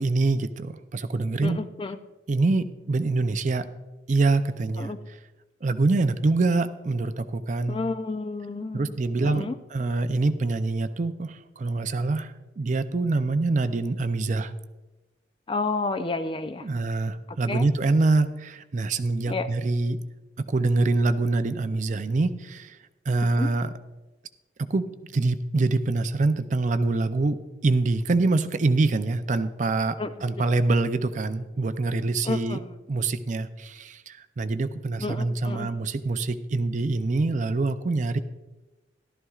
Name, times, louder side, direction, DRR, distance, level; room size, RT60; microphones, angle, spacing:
voice 1, 0.0-1.6 2.3-3.7 4.1-5.2 5.6-7.8 8.7-14.5 16.6-20.0 20.5-22.8 23.1-23.7 24.7-32.6 32.9-38.2, right 3 dB, 40° right, 10 dB, 0.4 m, -25 dB
voice 2, 1.4-2.0 4.8-5.0 7.7-9.0 9.2-9.6 15.5-16.7 17.5-17.7 19.3-19.5 23.4-23.5 30.0-30.1 32.2-32.7 35.0-35.7, left 3 dB, 30° left, 10 dB, 0.4 m, -30 dB
14.5 x 12.0 x 2.4 m, 1.1 s
head